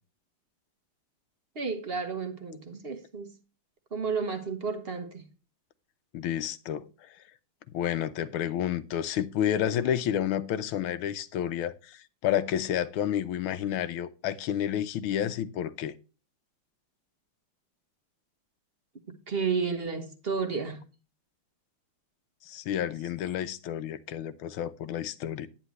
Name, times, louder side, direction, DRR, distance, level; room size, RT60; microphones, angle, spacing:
voice 1, 1.5-3.3 3.9-5.3 19.1-20.8, right 5 dB, 35° right, 1.1 m, -32 dB
voice 2, 6.1-7.1 7.7-15.9 22.4-25.5, left 10 dB, 75° left, 1.5 m, -30 dB
9.9 x 9.9 x 3.1 m
omnidirectional pair, 2.4 m